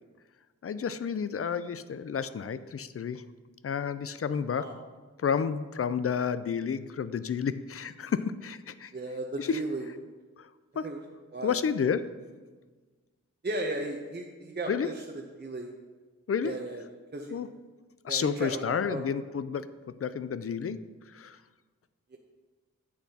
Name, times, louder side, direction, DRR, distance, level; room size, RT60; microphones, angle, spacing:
voice 1, 0.6-3.2 3.6-4.7 5.2-8.9 9.4-9.6 10.4-10.5 10.8-10.9 11.4-12.1 14.7-14.9 16.3-16.6 17.3-17.5 18.0-21.4, left 6 dB, 50° left, 14 dB, 0.4 m, -31 dB
voice 2, 8.9-9.9 10.8-11.0 11.3-11.6 13.4-14.9 15.4-15.7 16.4-16.8 17.1-17.4 18.1-19.0 22.1-22.2, right 2 dB, 35° right, 0 dB, 0.7 m, -35 dB
10.0 x 8.2 x 2.8 m, 1.4 s
wide cardioid pair, 75°, 30 cm